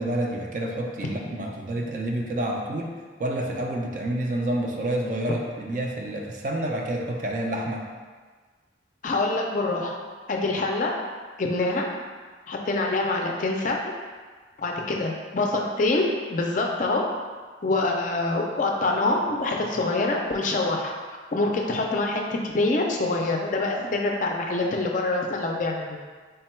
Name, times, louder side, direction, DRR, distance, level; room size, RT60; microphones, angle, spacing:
voice 1, 0.0-2.9 3.2-7.8, right 1 dB, 45° right, 0 dB, 0.4 m, -28 dB
voice 2, 9.0-10.0 10.3-10.9 11.4-11.9 12.5-13.9 14.6-17.0 17.6-20.9 21.3-26.0, left 2 dB, 45° left, 1 dB, 0.4 m, -25 dB
3.5 x 2.2 x 4.3 m, 1.5 s
head